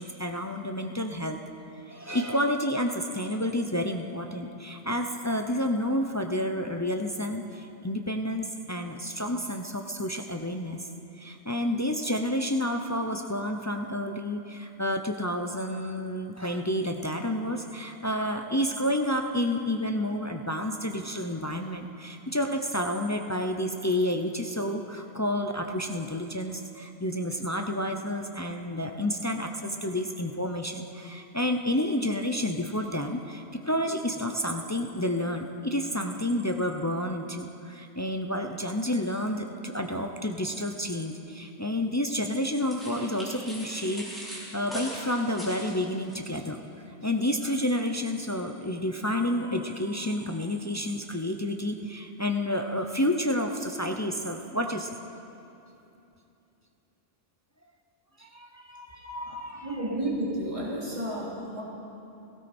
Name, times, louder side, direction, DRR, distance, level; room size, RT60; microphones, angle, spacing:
voice 1, 0.0-1.5 1.9-10.8 11.2-46.6 47.0-55.0 58.2-60.0, left 1 dB, 25° left, 4 dB, 0.4 m, -30 dB
sound 1, 42.1-46.2, equal, ahead, 4.2 m, -41 dB
voice 2, 59.0-59.3 59.6-61.6, right 1 dB, 25° right, -7 dB, 3.3 m, -32 dB
18.5 x 17.5 x 4.4 m, 2.8 s
omnidirectional pair, 1.3 m